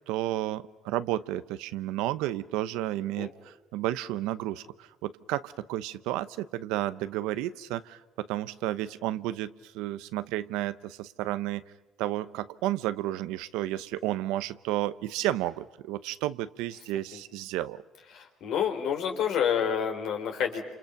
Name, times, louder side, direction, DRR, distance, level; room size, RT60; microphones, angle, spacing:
voice 1, 0.1-11.6 12.0-17.8, right 14 dB, 90° right, 15 dB, 0.8 m, -32 dB
voice 2, 18.1-20.7, left 8 dB, 75° left, 3 dB, 4.1 m, -28 dB
29.0 x 28.0 x 5.9 m, 1.1 s
cardioid pair, 85°, 0 cm